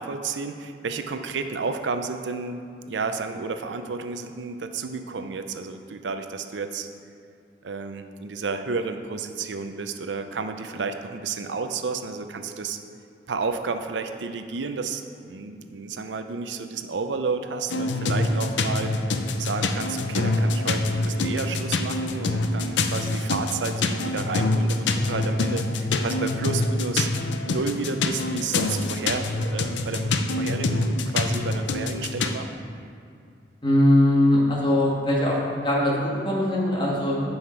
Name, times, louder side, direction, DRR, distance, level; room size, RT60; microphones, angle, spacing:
voice 1, 0.0-2.6 2.9-6.9 7.6-12.8 13.3-18.9 19.4-27.1 27.5-32.5, right 4 dB, 90° right, 8 dB, 0.5 m, -31 dB
sound 1, 17.7-32.4, left 2 dB, 85° left, 0.5 m, -25 dB
voice 2, 33.6-35.4 35.6-37.2, left 1 dB, 30° left, -4 dB, 1.7 m, -21 dB
9.9 x 5.7 x 4.5 m, 2.4 s
head